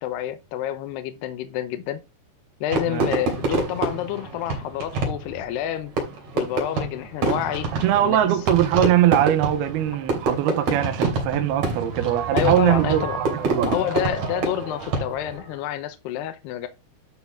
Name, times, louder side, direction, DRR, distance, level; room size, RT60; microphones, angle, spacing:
voice 1, 0.0-2.0 2.6-5.9 6.3-7.7 8.0-8.3 12.3-13.2 13.6-16.7, left 11 dB, 75° left, 2.8 m, -28 dB
Fireworks, 2.7-15.4, right 3 dB, 40° right, 3.9 m, -27 dB
voice 2, 7.8-13.0 13.5-13.7, right 12 dB, 70° right, 2.7 m, -21 dB
11.5 x 6.2 x 3.6 m
omnidirectional pair, 5.2 m